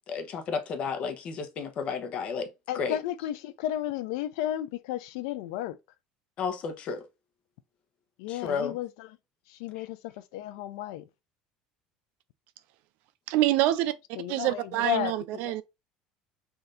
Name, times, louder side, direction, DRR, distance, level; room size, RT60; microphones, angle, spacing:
voice 1, 0.1-2.5 2.7-3.0 6.4-7.0 8.3-8.8 9.8-9.9, left 5 dB, 45° left, 0.9 m, -32 dB
voice 2, 2.7-5.8 8.2-9.1 9.5-11.0 14.2-15.1 15.4-15.5, left 13 dB, 85° left, 0.4 m, -33 dB
voice 3, 13.3-15.6, right 15 dB, 70° right, 0.4 m, -26 dB
3.4 x 2.7 x 3.8 m
supercardioid pair, 120°, 3 cm